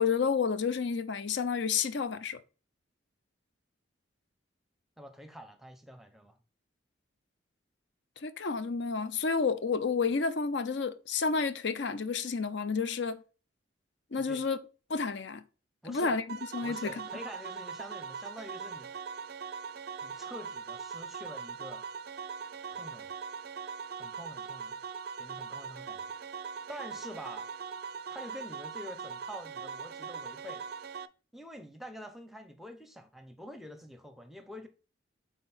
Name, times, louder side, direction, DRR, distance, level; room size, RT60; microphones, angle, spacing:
voice 1, 0.0-2.4 8.2-13.2 14.1-14.6 14.9-15.4 15.8-17.0, left 5 dB, 65° left, 0.6 m, -30 dB
voice 2, 5.0-6.4 14.2-14.4 15.8-16.2 16.6-18.9 20.0-21.8 22.7-23.1 24.0-24.8 25.2-26.0 26.7-27.5 28.1-30.6 31.3-34.7, equal, ahead, 0.6 m, -47 dB
sound 1, 16.3-31.1, right 6 dB, 55° right, 0.4 m, -41 dB
5.8 x 4.1 x 4.3 m
head